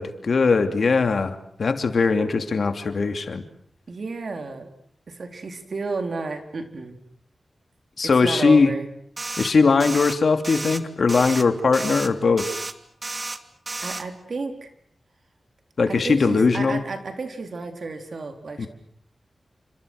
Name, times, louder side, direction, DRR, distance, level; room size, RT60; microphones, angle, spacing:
voice 1, 0.0-3.4 8.0-8.7 9.4-12.4 15.8-16.8 18.6-18.7, left 4 dB, 75° left, 8 dB, 2.7 m, -20 dB
voice 2, 3.9-4.7 5.1-7.0 8.2-8.9 13.8-14.7 15.9-18.7, right 3 dB, 70° right, 6 dB, 4.3 m, -32 dB
sound 1, 9.2-9.5 9.8-10.2 10.4-10.8 11.1-11.4 11.7-12.1 12.4-12.7 13.0-13.4 13.7-14.0, right 3 dB, 45° right, 2.2 m, -32 dB
29.0 x 27.0 x 6.5 m, 0.66 s
cardioid pair, 55°, 0 cm